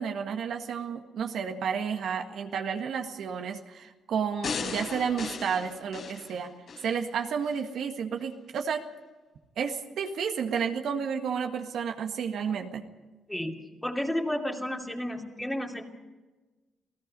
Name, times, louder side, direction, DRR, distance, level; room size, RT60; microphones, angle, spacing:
voice 1, 0.0-6.5 6.8-8.8 9.6-12.8, right 7 dB, 70° right, 4 dB, 1.8 m, -31 dB
sound 1, 4.4-6.9 7.4-7.5, left 5 dB, 60° left, 4.1 m, -36 dB
voice 2, 13.3-15.8, left 1 dB, 5° left, -1 dB, 2.6 m, -32 dB
28.5 x 17.0 x 5.4 m, 1.2 s
cardioid pair, 90°, 0 cm